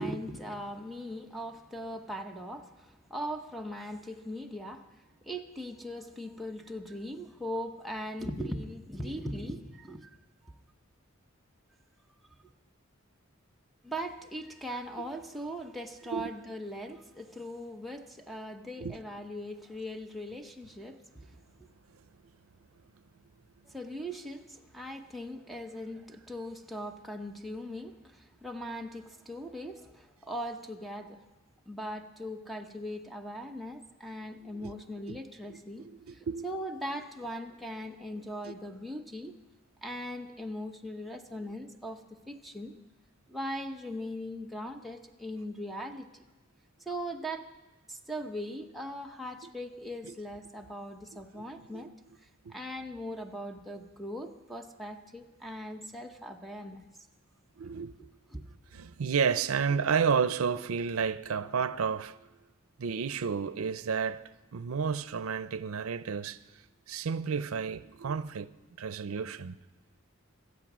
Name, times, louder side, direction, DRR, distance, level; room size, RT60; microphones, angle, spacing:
voice 1, 0.0-10.1 13.8-21.0 23.7-31.2 31.7-35.8 36.1-39.3 39.8-42.7 43.3-46.2 46.9-47.5 47.9-51.9 52.5-56.8 58.3-58.4, equal, ahead, 0.9 m, -40 dB
voice 2, 35.8-36.5 50.0-50.2 51.3-51.9 52.4-52.5 57.6-57.9 58.7-62.3 62.8-66.4 66.9-68.5 68.8-69.6, right 6 dB, 90° right, 0.5 m, -31 dB
25.0 x 8.3 x 6.1 m
head